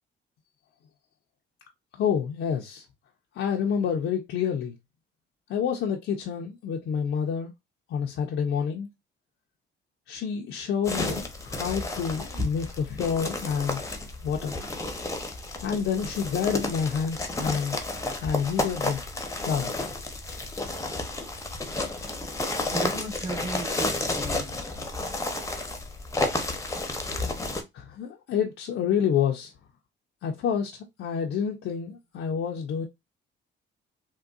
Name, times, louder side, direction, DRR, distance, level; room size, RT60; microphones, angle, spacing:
voice 1, 1.9-2.8 3.3-4.8 5.5-7.5 7.9-8.9 10.1-13.8 14.2-14.5 15.6-17.8 18.2-19.0 19.4-19.7 27.7-29.5 30.2-30.7 31.0-32.9, left 7 dB, 70° left, 0.6 m, -28 dB
sound 1, 10.8-27.6, left 2 dB, 15° left, 0.8 m, -32 dB
voice 2, 22.7-24.5, right 2 dB, 20° right, 1.0 m, -37 dB
3.7 x 2.2 x 2.4 m
cardioid pair, 90°, 20 cm